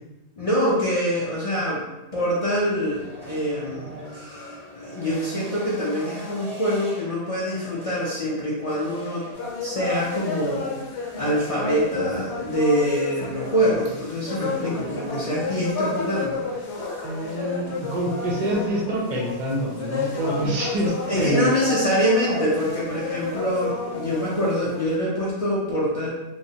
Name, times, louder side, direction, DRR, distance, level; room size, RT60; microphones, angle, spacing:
voice 1, 0.4-1.8 2.1-4.4 4.7-9.3 9.6-16.5 21.1-26.1, equal, 55° left, -6 dB, 0.4 m, -25 dB
sound 1, 2.6-10.7, equal, 5° left, 0.7 m, -40 dB
sound 2, 9.3-25.0, left 4 dB, 75° left, 0.9 m, -31 dB
voice 2, 17.0-21.5, equal, 55° right, -2 dB, 0.6 m, -26 dB
3.0 x 2.0 x 2.7 m, 1.0 s
omnidirectional pair, 1.2 m